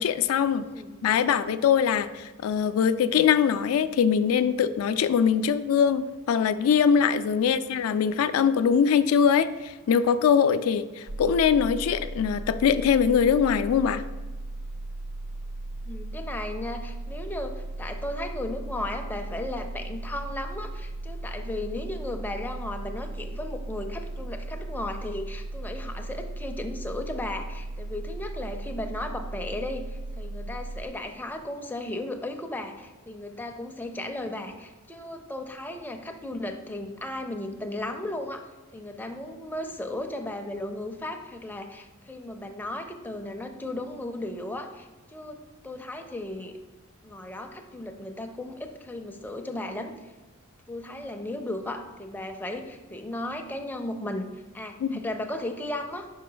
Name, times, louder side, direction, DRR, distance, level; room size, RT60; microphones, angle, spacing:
voice 1, 0.0-0.6 1.0-14.0 54.8-55.0, left 7 dB, 80° left, 11 dB, 0.3 m, -22 dB
voice 2, 0.6-1.0 7.4-7.6 15.9-46.6 47.0-49.9 50.7-56.1, left 1 dB, 10° left, 4 dB, 0.4 m, -35 dB
sound 1, 11.1-30.9, right 2 dB, 60° right, 0.5 m, -36 dB
5.7 x 4.7 x 3.8 m, 1.2 s
head